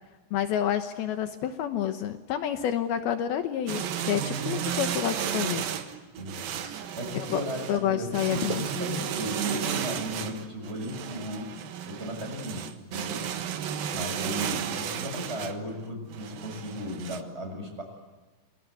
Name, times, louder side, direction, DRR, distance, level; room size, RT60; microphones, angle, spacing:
voice 1, 0.3-5.6 7.1-7.4 7.7-9.0, left 10 dB, 75° left, 8 dB, 2.9 m, -29 dB
sound 1, 3.7-17.2, right 9 dB, 65° right, 3.2 m, -33 dB
Clapping, 5.3-5.5 6.6-6.8 8.1-8.2 8.5-8.7 9.8-10.0, right 6 dB, 30° right, 3.3 m, -38 dB
voice 2, 6.2-6.5 7.0-11.5 11.8-13.3 13.9-17.8, equal, 15° right, 3 dB, 6.9 m, -36 dB
29.5 x 24.5 x 8.1 m, 1.2 s
omnidirectional pair, 4.7 m